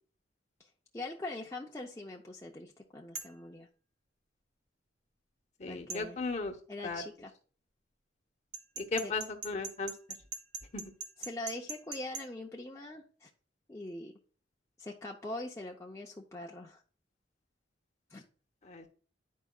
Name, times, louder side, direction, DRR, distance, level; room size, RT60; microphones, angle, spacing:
voice 1, 0.6-3.7 5.7-6.2 6.7-7.3 9.0-9.1 11.2-13.3 13.7-14.1 14.8-16.8 18.1-18.2, left 2 dB, 15° left, -2 dB, 0.6 m, -43 dB
sound 1, 3.1-3.4 5.9-6.0 8.5-12.3, right 4 dB, 70° right, 1.2 m, -41 dB
voice 2, 5.6-6.6 6.8-7.0 8.8-9.9 10.7-10.9 18.6-18.9, left 3 dB, 40° left, 4 dB, 0.9 m, -36 dB
11.0 x 4.6 x 2.3 m, 0.42 s
head